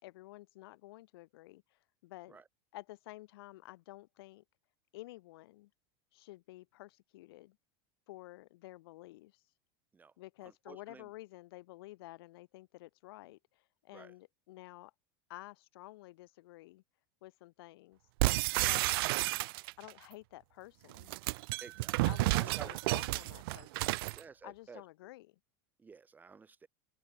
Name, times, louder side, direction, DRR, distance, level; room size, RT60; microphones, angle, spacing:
voice 1, 0.0-2.4 2.7-4.4 4.9-5.7 6.1-7.6 8.1-9.4 10.2-14.9 15.3-16.8 17.2-18.0 18.5-19.0 19.8-21.1 22.0-24.0 24.4-25.4, left 18 dB, 75° left, 4.9 m, -51 dB
voice 2, 10.4-11.1 13.9-14.1 21.6-22.0 22.2-22.9 24.1-24.8 25.8-26.7, right 5 dB, 15° right, 1.6 m, -53 dB
sound 1, 18.2-19.9 20.9-24.2, right 22 dB, 70° right, 0.6 m, -31 dB
open air
supercardioid pair, 155°, 13 cm